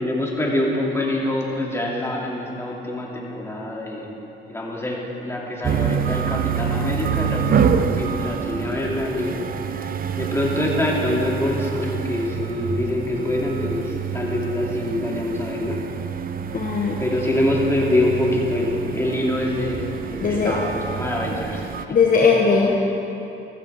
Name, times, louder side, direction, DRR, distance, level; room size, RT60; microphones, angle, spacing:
voice 1, 0.0-4.1 4.5-9.4 9.7-9.9 10.2-15.8 17.0-22.0, left 1 dB, 15° left, -3 dB, 2.6 m, -25 dB
sound 1, 5.6-21.9, right 7 dB, 45° right, 0.6 m, -27 dB
voice 2, 16.5-17.0 20.2-20.5 21.9-22.8, left 5 dB, 45° left, -1 dB, 1.2 m, -18 dB
15.0 x 14.5 x 3.6 m, 2.9 s
cardioid pair, 90°, 20 cm